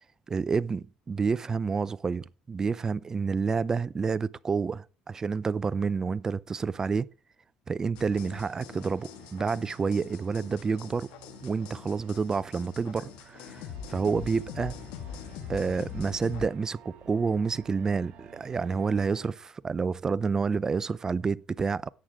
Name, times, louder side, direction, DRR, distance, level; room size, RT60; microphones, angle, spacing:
voice 1, 0.3-7.1 7.7-11.1 11.4-14.7 15.5-21.9, right 5 dB, 30° right, 0.4 m, -29 dB
sound 1, 8.0-16.5, left 8 dB, 85° left, 1.5 m, -43 dB
sound 2, 8.3-19.3, right 7 dB, 65° right, 4.1 m, -53 dB
11.0 x 8.9 x 3.5 m
supercardioid pair, 85°, 2 cm